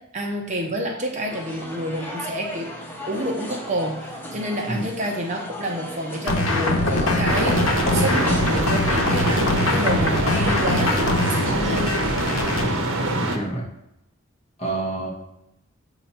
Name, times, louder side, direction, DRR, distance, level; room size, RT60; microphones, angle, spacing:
voice 1, 0.1-2.7 3.1-11.9, right 1 dB, 35° right, 1 dB, 0.8 m, -28 dB
sound 1, 1.3-12.3, equal, 10° left, 0.7 m, -37 dB
sound 2, 6.3-12.7, left 2 dB, 75° left, 1.0 m, -22 dB
sound 3, 7.3-13.4, right 1 dB, 75° right, 0.8 m, -25 dB
voice 2, 13.1-13.7 14.6-15.1, right 2 dB, 30° left, -3 dB, 1.3 m, -28 dB
7.6 x 2.9 x 5.6 m, 0.87 s
head